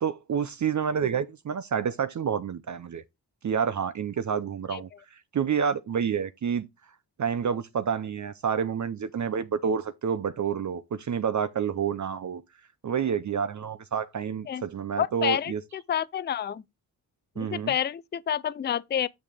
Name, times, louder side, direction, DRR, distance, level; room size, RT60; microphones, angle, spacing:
voice 1, 0.0-3.0 3.4-6.7 7.2-12.4 12.8-15.6 17.4-17.7, right 7 dB, 45° right, 0.6 m, -29 dB
voice 2, 15.0-16.6 17.4-19.1, left 9 dB, 25° left, 0.4 m, -29 dB
6.6 x 6.2 x 3.5 m
cardioid pair, 80°, 42 cm